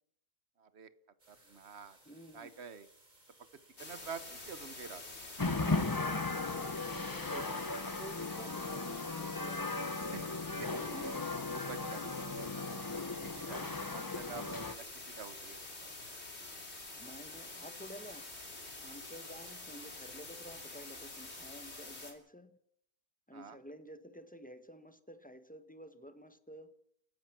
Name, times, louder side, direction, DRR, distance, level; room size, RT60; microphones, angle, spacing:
voice 1, 0.6-0.9 1.3-2.0 2.3-2.9 3.8-5.0 10.1-12.8 13.2-13.6 13.9-15.9 23.3-23.6, right 6 dB, 45° right, 1.3 m, -48 dB
sound 1, 1.2-15.7, right 1 dB, 25° right, 4.8 m, -64 dB
voice 2, 2.0-2.5 6.5-9.7 13.4-13.8 17.0-18.3 18.8-22.5 23.3-26.7, equal, 5° left, 1.2 m, -51 dB
sound 2, 3.8-22.1, left 2 dB, 40° left, 3.5 m, -47 dB
sound 3, 5.4-14.7, left 3 dB, 20° left, 0.5 m, -37 dB
28.5 x 15.0 x 6.1 m
omnidirectional pair, 1.7 m